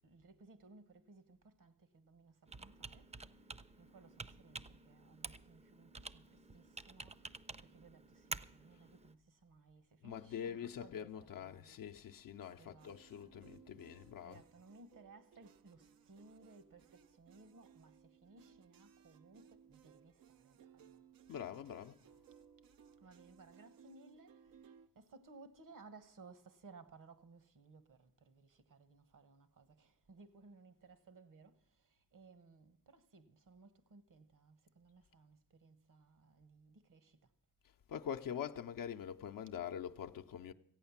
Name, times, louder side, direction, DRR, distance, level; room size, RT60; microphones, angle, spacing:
voice 1, 0.0-11.8 12.6-13.3 14.2-21.1 23.0-37.3, right 3 dB, 65° right, 1.3 m, -61 dB
Computer keyboard, 2.5-9.1, right 3 dB, 20° right, 0.5 m, -50 dB
voice 2, 10.0-14.4 21.3-22.0 37.9-40.5, left 8 dB, 80° left, 0.6 m, -44 dB
sound 1, 12.4-24.9, right 8 dB, 90° right, 0.6 m, -64 dB
14.5 x 8.8 x 7.2 m
cardioid pair, 60°, 34 cm